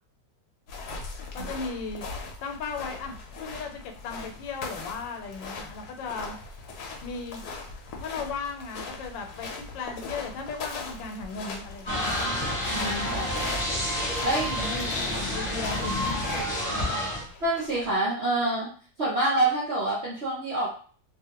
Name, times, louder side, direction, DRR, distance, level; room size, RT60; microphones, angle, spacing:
sound 1, 0.7-17.9, left 4 dB, 70° left, 1.1 m, -40 dB
voice 1, 1.3-2.1 2.4-6.3 7.0-7.4 8.0-12.2 14.3-16.2 16.7-17.3, left 4 dB, 85° left, 4 dB, 1.3 m, -37 dB
sound 2, 11.9-17.3, equal, 30° left, 0.9 m, -29 dB
voice 2, 12.7-13.5 14.2-14.5 17.4-18.7 19.0-20.8, right 2 dB, 65° right, -5 dB, 0.6 m, -27 dB
2.7 x 2.5 x 2.8 m, 0.42 s
omnidirectional pair, 2.0 m